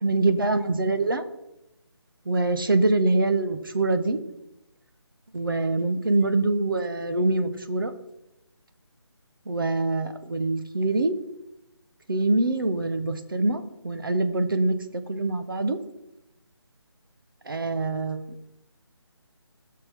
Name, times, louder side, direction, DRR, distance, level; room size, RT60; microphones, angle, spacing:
voice 1, 0.0-1.2 2.2-4.2 5.3-7.9 9.5-11.2 12.1-15.8 17.4-18.4, right 2 dB, 50° right, 8 dB, 1.0 m, -24 dB
16.5 x 6.6 x 3.6 m, 0.89 s
figure-of-eight pair, 180°, 15 cm